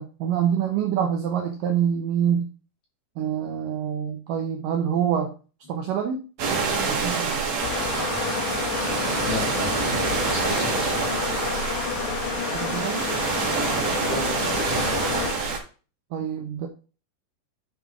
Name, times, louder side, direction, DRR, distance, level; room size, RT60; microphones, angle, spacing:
voice 1, 0.0-2.5 3.2-5.3 5.7-6.2 6.8-7.4 12.5-13.1 16.1-16.7, right 8 dB, 75° right, 2 dB, 2.0 m, -26 dB
sound 1, 6.4-15.6, right 4 dB, 50° right, 2.3 m, -26 dB
sound 2, 7.6-15.3, left 8 dB, 80° left, 2.0 m, -30 dB
voice 2, 9.1-9.8 10.3-11.0 14.0-15.1, left 1 dB, 40° left, -3 dB, 3.2 m, -35 dB
8.9 x 5.5 x 3.6 m, 0.36 s
omnidirectional pair, 4.8 m